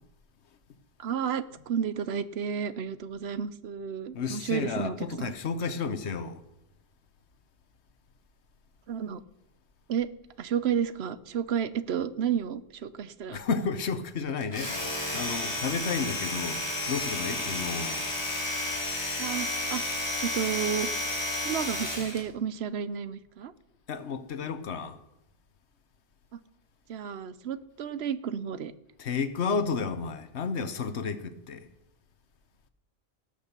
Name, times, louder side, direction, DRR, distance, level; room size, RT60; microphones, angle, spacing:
voice 1, 1.0-5.3 8.9-9.2 9.9-10.1 10.4-13.4 19.2-19.8 20.2-20.9 21.4-23.5 26.9-28.7, right 8 dB, 70° right, 0.9 m, -31 dB
voice 2, 4.1-6.4 13.3-14.9 15.1-18.0 23.9-25.0 29.0-31.7, left 5 dB, 80° left, 1.2 m, -32 dB
Domestic sounds home sounds, 14.4-22.3, left 1 dB, 20° left, 2.7 m, -32 dB
18.0 x 6.6 x 6.8 m
omnidirectional pair, 1.1 m